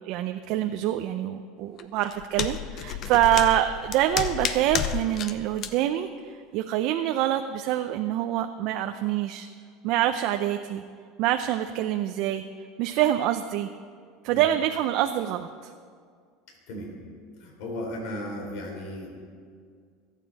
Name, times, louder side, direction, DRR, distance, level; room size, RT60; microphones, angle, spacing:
voice 1, 0.0-9.5 9.8-10.8 11.2-12.4 12.8-13.7 14.2-15.7, right 12 dB, 55° right, 7 dB, 0.5 m, -26 dB
sound 1, 1.8-5.3 5.6-5.7, left 9 dB, 45° left, 0.8 m, -31 dB
voice 2, 17.4-19.2, left 1 dB, 65° left, -1 dB, 3.8 m, -35 dB
25.0 x 9.1 x 4.1 m, 2.1 s
supercardioid pair, 135°, 0 cm